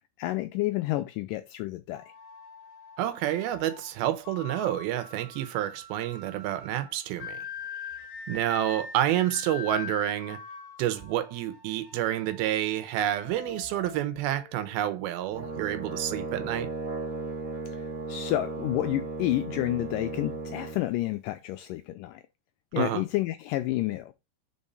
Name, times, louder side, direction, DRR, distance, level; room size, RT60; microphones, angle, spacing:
voice 1, 0.2-2.1 17.7-22.2 22.7-24.1, left 16 dB, 85° left, 1.9 m, -30 dB
sound 1, 1.9-14.7, left 6 dB, 60° left, 1.6 m, -43 dB
voice 2, 3.0-7.4 8.3-10.4 10.8-16.7 22.8-23.0, right 12 dB, 85° right, 2.7 m, -29 dB
Brass instrument, 15.3-20.8, right 3 dB, 45° right, 1.0 m, -36 dB
5.2 x 4.7 x 4.1 m
omnidirectional pair, 4.3 m